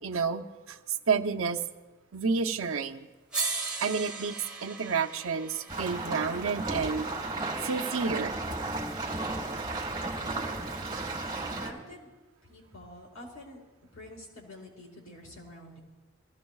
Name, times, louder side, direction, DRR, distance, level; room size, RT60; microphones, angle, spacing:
voice 1, 0.0-0.8 1.1-1.6 2.1-3.1 3.8-4.3 4.6-7.1 7.6-8.3, right 5 dB, 80° right, 5 dB, 0.7 m, -30 dB
sound 1, 2.7-2.8 3.3-7.5 8.9-9.0, right 4 dB, 5° right, 1.4 m, -38 dB
sound 2, 5.7-11.7, right 2 dB, 20° right, 1.7 m, -34 dB
voice 2, 11.5-12.1 12.4-15.8, left 1 dB, 90° left, -3 dB, 4.7 m, -48 dB
24.0 x 15.5 x 2.3 m, 1.2 s
head